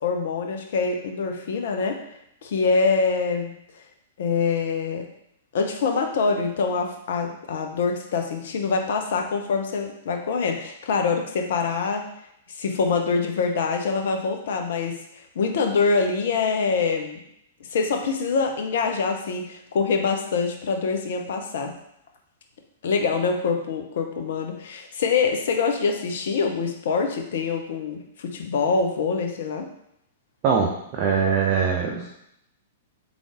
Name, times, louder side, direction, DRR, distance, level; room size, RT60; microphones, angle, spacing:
voice 1, 0.0-2.0 2.4-3.5 4.2-5.1 5.5-12.0 12.5-15.0 15.4-17.2 17.7-21.7 22.8-29.7, left 5 dB, 60° left, 4 dB, 0.7 m, -25 dB
voice 2, 30.4-32.2, right 6 dB, 40° right, -2 dB, 0.7 m, -22 dB
3.8 x 3.5 x 3.7 m, 0.78 s
figure-of-eight pair, 110°, 0 cm